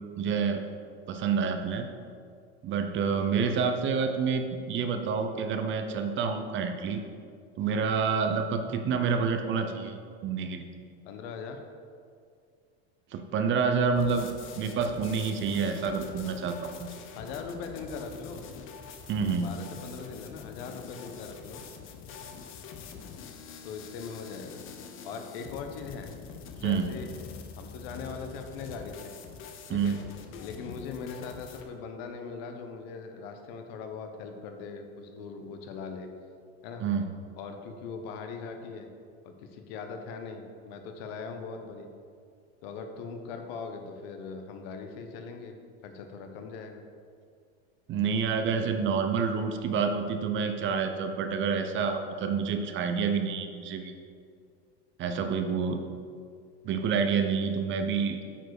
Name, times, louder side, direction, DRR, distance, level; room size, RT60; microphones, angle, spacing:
voice 1, 0.2-0.6 1.1-1.9 2.6-7.0 7.6-10.7 13.1-14.3 14.6-17.0 19.1-19.6 26.6-26.9 29.7-30.0 36.8-37.1 47.9-54.0 55.0-55.8 56.6-58.2, right 5 dB, 35° right, 6 dB, 0.7 m, -28 dB
voice 2, 11.0-11.6 17.1-18.4 19.4-21.6 23.6-24.6 25.0-26.1 26.5-27.1 27.6-29.1 29.7-30.0 30.4-36.1 36.6-36.8 37.4-38.9 39.2-41.9 42.6-45.6 45.8-46.8, left 5 dB, 65° left, 5 dB, 1.1 m, -40 dB
sound 1, 14.0-31.7, left 6 dB, 40° left, 0.8 m, -45 dB
8.9 x 4.6 x 4.8 m, 2.2 s
supercardioid pair, 120°, 33 cm